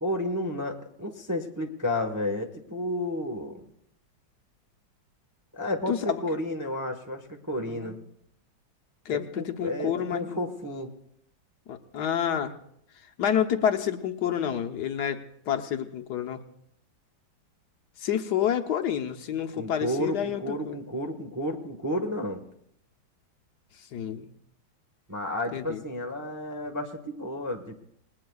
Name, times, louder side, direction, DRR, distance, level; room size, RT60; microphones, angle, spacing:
voice 1, 0.0-3.7 5.5-8.0 9.1-10.9 19.5-22.4 25.1-27.8, left 1 dB, 15° right, 3 dB, 0.8 m, -32 dB
voice 2, 5.9-6.2 7.6-7.9 9.1-10.4 11.7-12.5 13.2-16.4 18.0-20.8 23.9-24.3 25.5-25.8, left 9 dB, 65° left, 6 dB, 1.4 m, -29 dB
27.0 x 20.0 x 2.4 m, 0.72 s
omnidirectional pair, 2.1 m